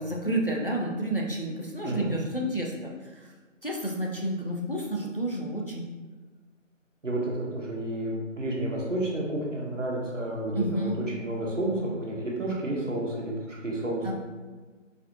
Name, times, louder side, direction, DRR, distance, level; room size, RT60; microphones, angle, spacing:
voice 1, 0.0-3.3 3.6-5.9 10.5-11.0 14.0-14.1, right 1 dB, 45° left, -1 dB, 0.5 m, -30 dB
voice 2, 7.0-10.9 11.2-14.1, right 1 dB, 70° right, -3 dB, 1.2 m, -31 dB
4.0 x 2.7 x 2.8 m, 1.3 s
figure-of-eight pair, 175°, 39 cm